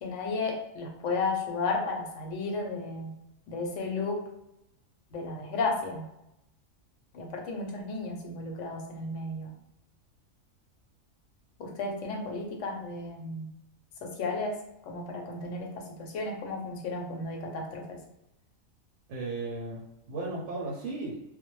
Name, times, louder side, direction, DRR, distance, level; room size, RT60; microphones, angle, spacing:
voice 1, 0.0-3.2 3.5-4.2 5.1-6.1 7.1-9.5 11.6-13.5 14.0-14.6 14.8-15.7 16.0-18.0, left 3 dB, 70° left, 1 dB, 0.9 m, -33 dB
voice 2, 19.1-21.2, right 2 dB, 70° right, -2 dB, 0.8 m, -35 dB
2.2 x 2.0 x 3.0 m, 0.86 s
omnidirectional pair, 1.4 m